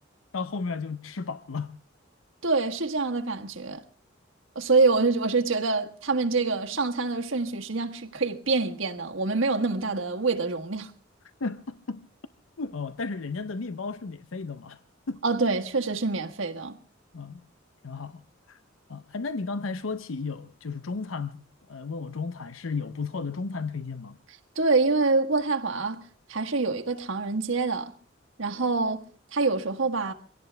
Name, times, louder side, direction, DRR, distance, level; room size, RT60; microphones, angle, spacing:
voice 1, 0.3-1.7 11.4-12.0 12.6-14.8 15.1-15.2 17.1-17.4 17.8-18.2 18.5-18.6 18.9-21.4 21.7-24.2, left 4 dB, 80° left, 0.7 m, -33 dB
voice 2, 2.4-3.8 4.5-10.9 15.2-16.7 24.5-26.0 26.3-27.9 28.4-29.0 29.3-30.1, right 3 dB, 75° right, 1.6 m, -26 dB
24.0 x 17.5 x 3.4 m
head